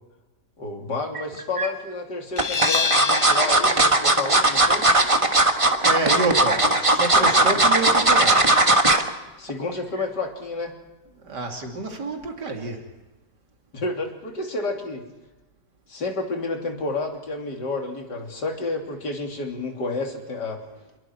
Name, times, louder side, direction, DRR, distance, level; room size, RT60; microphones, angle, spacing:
voice 1, 0.6-4.9 9.4-10.7 13.7-15.0 15.9-20.6, left 3 dB, 85° left, 2 dB, 3.7 m, -30 dB
sound 1, 1.1-1.7 2.4-9.1 9.5-9.7 10.0-10.1, right 2 dB, 20° right, 1.5 m, -18 dB
sound 2, 2.4-7.8, left 6 dB, 65° left, 1.9 m, -31 dB
voice 2, 5.8-8.5 11.2-12.8, right 2 dB, 85° right, 2 dB, 3.4 m, -27 dB
28.5 x 21.5 x 4.7 m, 1.0 s
omnidirectional pair, 1.8 m